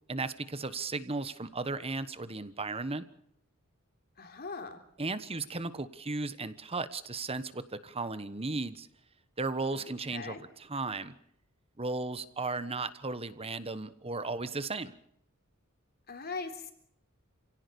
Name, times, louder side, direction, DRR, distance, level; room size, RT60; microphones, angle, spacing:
voice 1, 0.1-3.0 5.0-8.9 9.4-11.1 11.8-14.9, right 3 dB, 25° right, 13 dB, 1.2 m, -35 dB
voice 2, 4.2-4.8 9.7-10.4 16.1-16.7, left 4 dB, 45° left, 6 dB, 3.5 m, -41 dB
29.5 x 17.0 x 7.0 m, 0.71 s
head